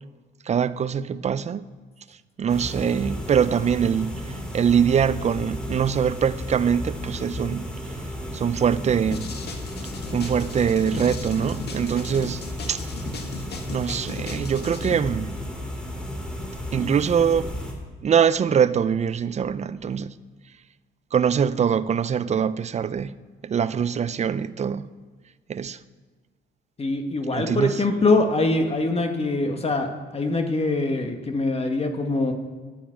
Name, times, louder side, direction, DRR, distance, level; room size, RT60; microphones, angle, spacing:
voice 1, 0.5-1.7 2.4-7.7 8.3-9.3 10.1-12.4 12.7-12.8 13.7-15.3 16.7-17.5 18.0-20.1 21.1-23.2 23.4-24.9 25.5-25.8 27.3-27.8, right 7 dB, 35° right, 0.5 m, -23 dB
sound 1, 2.5-17.7, left 1 dB, 5° left, 2.5 m, -34 dB
sound 2, 9.1-15.0, left 4 dB, 55° left, 1.7 m, -37 dB
voice 2, 26.8-32.3, left 2 dB, 30° left, 1.4 m, -23 dB
10.0 x 8.9 x 7.6 m
cardioid pair, 90°, 20 cm